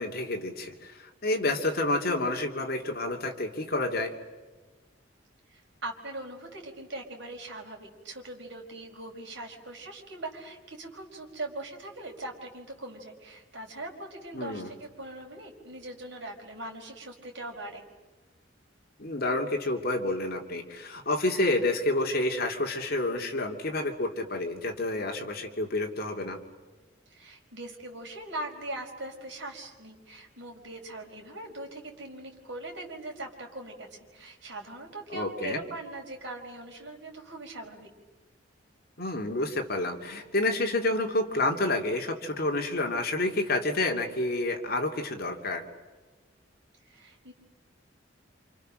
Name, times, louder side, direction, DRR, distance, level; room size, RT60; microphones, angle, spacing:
voice 1, 0.0-4.1 14.3-14.7 19.0-26.4 35.1-35.6 39.0-45.6, left 2 dB, 50° left, 3 dB, 2.8 m, -29 dB
voice 2, 5.5-17.8 27.1-37.9 46.9-47.3, right 2 dB, 65° right, 1 dB, 4.9 m, -41 dB
29.0 x 27.5 x 6.5 m, 1.3 s
head